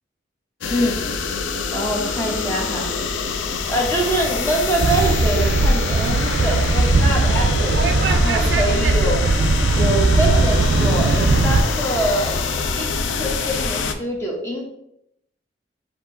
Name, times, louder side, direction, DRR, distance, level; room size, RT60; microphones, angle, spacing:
sound 1, 0.6-13.9, left 4 dB, 80° left, 0.4 m, -25 dB
voice 1, 1.7-2.9 3.7-9.3 9.7-12.3 12.8-12.9 13.2-14.6, right 1 dB, 15° left, -2 dB, 1.0 m, -24 dB
sound 2, 4.8-11.6, right 3 dB, 65° right, 0.4 m, -18 dB
4.4 x 2.8 x 3.9 m, 0.76 s
head